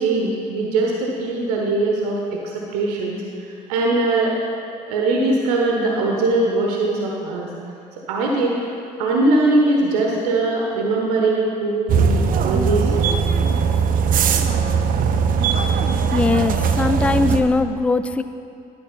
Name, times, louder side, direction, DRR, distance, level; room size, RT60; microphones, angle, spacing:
voice 1, 0.0-3.2 3.7-4.3 4.9-7.5 8.1-8.6 9.0-13.2, right 2 dB, 65° right, -1 dB, 0.9 m, -21 dB
sound 1, 11.9-17.4, right 6 dB, 40° right, 0.6 m, -19 dB
voice 2, 16.1-18.2, left 3 dB, 5° left, 11 dB, 0.3 m, -20 dB
11.5 x 4.8 x 5.6 m, 2.6 s
figure-of-eight pair, 50°, 21 cm